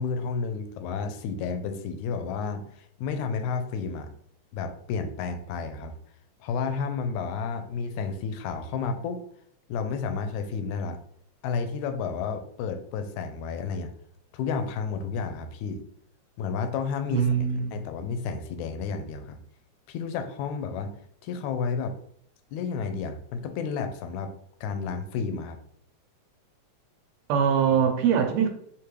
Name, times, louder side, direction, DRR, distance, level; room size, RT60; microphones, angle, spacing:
voice 1, 0.0-4.1 4.5-5.9 6.4-9.2 9.7-11.0 11.4-13.9 14.3-15.8 16.4-17.3 17.7-19.4 19.9-20.9 21.2-21.9 22.5-24.3 24.6-25.6, left 5 dB, 80° left, 7 dB, 1.9 m, -31 dB
voice 2, 17.1-17.8 27.3-28.5, right 7 dB, 75° right, 4 dB, 1.7 m, -22 dB
5.1 x 3.0 x 3.1 m, 0.68 s
omnidirectional pair, 3.4 m